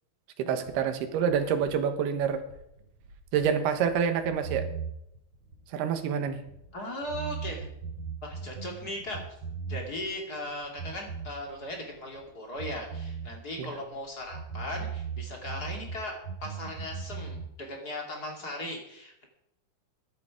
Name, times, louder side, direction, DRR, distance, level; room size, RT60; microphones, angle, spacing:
voice 1, 0.4-2.4 3.3-4.7 5.7-6.4 13.6-13.7, right 7 dB, 75° right, 8 dB, 3.1 m, -27 dB
sound 1, 0.7-6.7 7.0-10.1 10.4-12.2 12.5-16.0 16.2-17.5, right 5 dB, 40° right, 4.4 m, -39 dB
voice 2, 6.7-7.7 8.2-9.2 9.7-16.2 16.4-19.3, left 1 dB, 30° left, 1 dB, 2.2 m, -38 dB
15.5 x 11.0 x 4.9 m, 0.80 s
omnidirectional pair, 4.8 m